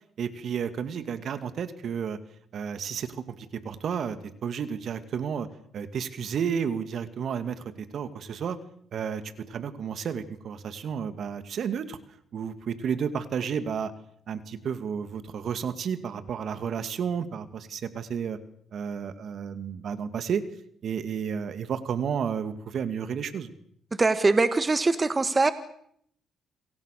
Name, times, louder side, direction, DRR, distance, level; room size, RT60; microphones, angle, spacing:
voice 1, 0.2-2.2 2.5-5.5 5.7-8.6 8.9-12.0 12.3-13.9 14.3-18.4 18.7-20.4 20.8-23.5, right 7 dB, 60° right, 12 dB, 2.5 m, -32 dB
voice 2, 24.0-25.5, right 3 dB, 25° right, 12 dB, 1.6 m, -22 dB
28.0 x 23.5 x 6.8 m, 0.68 s
cardioid pair, 90°, 0 cm